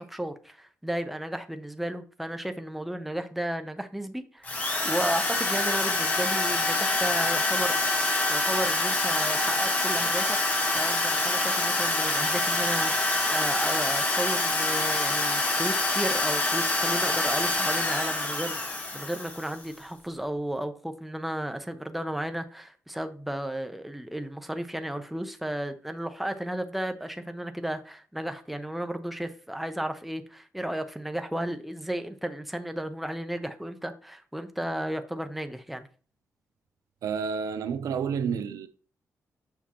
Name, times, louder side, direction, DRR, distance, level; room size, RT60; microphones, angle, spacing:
voice 1, 0.0-10.3 10.7-35.9, right 1 dB, ahead, 0.6 m, -33 dB
Drill, 4.4-19.6, left 2 dB, 30° left, 1.3 m, -26 dB
voice 2, 37.0-38.7, right 6 dB, 90° right, 0.6 m, -30 dB
7.2 x 5.8 x 2.9 m
wide cardioid pair, 150°, 6 cm